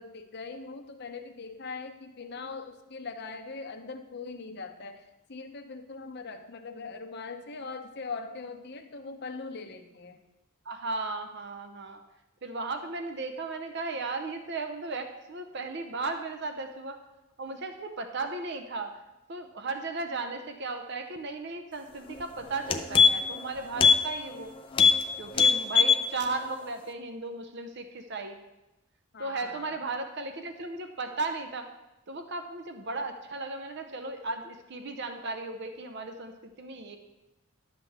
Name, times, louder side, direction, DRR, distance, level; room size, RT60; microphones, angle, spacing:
voice 1, 0.0-10.2 25.4-25.5 29.1-29.8, left 4 dB, 50° left, 6 dB, 0.7 m, -41 dB
voice 2, 10.7-12.0 12.4-17.0 17.4-18.9 19.3-24.5 25.2-28.4 29.2-31.7 32.1-37.0, right 3 dB, 50° right, 7 dB, 0.7 m, -36 dB
sound 1, 22.1-22.2 22.5-23.4 23.8-24.0 24.3-24.4 24.7-25.0 25.3-26.0 26.4-26.5, left 5 dB, 25° left, 0.4 m, -20 dB
11.5 x 7.4 x 3.5 m, 0.99 s
head